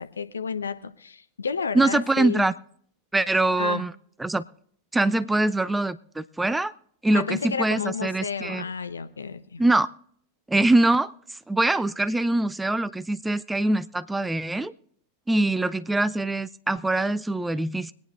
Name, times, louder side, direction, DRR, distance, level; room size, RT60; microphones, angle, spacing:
voice 1, 0.0-2.5 3.6-3.8 7.1-9.6, left 5 dB, 75° left, 0.6 m, -31 dB
voice 2, 1.7-2.5 3.1-3.9 4.2-4.4 4.9-6.7 7.0-8.6 9.6-9.9 10.5-14.7 15.3-17.9, right 2 dB, 5° right, 0.4 m, -23 dB
24.0 x 9.3 x 2.5 m
figure-of-eight pair, 90°, 0 cm